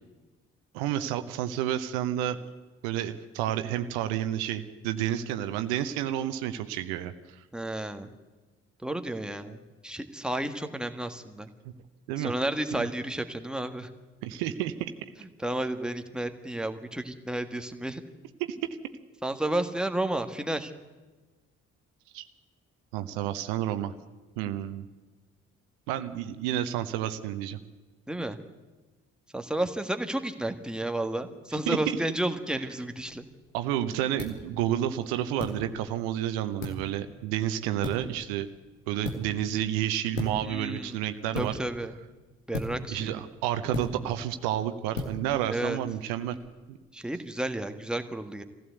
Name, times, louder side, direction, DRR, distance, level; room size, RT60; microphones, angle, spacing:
voice 1, 0.7-2.4 2.8-7.4 12.1-12.3 12.8-12.9 14.2-14.9 18.5-18.6 22.1-22.3 22.9-23.9 24.4-24.8 25.9-27.6 31.7-32.0 33.5-38.5 38.9-41.5 42.9-46.4 46.7-46.8, right 11 dB, 70° right, 10 dB, 1.0 m, -30 dB
voice 2, 7.5-8.1 8.8-9.6 9.8-11.5 12.2-13.9 15.4-18.0 19.2-20.7 28.1-28.4 29.3-33.3 40.4-41.0 41.4-42.0 42.5-43.1 45.5-45.8 46.9-48.4, right 1 dB, ahead, 7 dB, 1.7 m, -32 dB
sound 1, 33.0-46.5, left 1 dB, 90° left, 2.1 m, -40 dB
22.0 x 15.5 x 8.2 m, 1.2 s
figure-of-eight pair, 45°, 37 cm